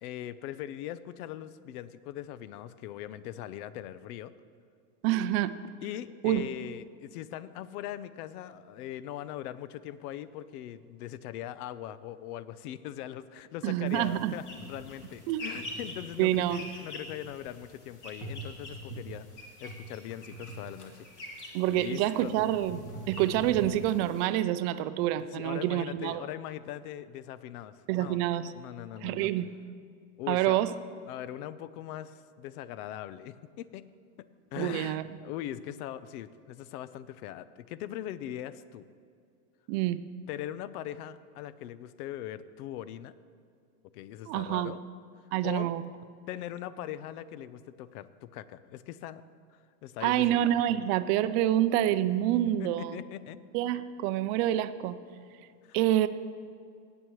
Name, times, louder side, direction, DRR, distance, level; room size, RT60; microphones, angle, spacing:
voice 1, 0.0-4.3 5.8-19.3 19.6-22.3 25.3-28.2 28.5-29.3 30.2-30.7 31.1-33.9 34.2-38.9 40.3-43.1 43.9-44.8 45.4-45.7 46.3-49.2 49.8-50.4 52.6-53.4 55.6-55.8, left 12 dB, 70° left, 16 dB, 0.6 m, -40 dB
voice 2, 5.0-5.5 6.2-6.5 13.6-14.3 15.3-15.4 16.2-16.6 21.5-22.8 23.1-26.2 27.9-28.5 29.0-29.5 30.3-30.7 34.6-35.0 39.7-40.0 44.3-44.7 45.3-45.8 50.0-53.0 53.5-55.0 55.7-56.1, right 13 dB, 45° right, 13 dB, 0.5 m, -27 dB
sound 1, 13.9-24.3, equal, 40° left, 2.7 m, -44 dB
17.5 x 8.8 x 3.1 m, 2.3 s
supercardioid pair, 130°, 47 cm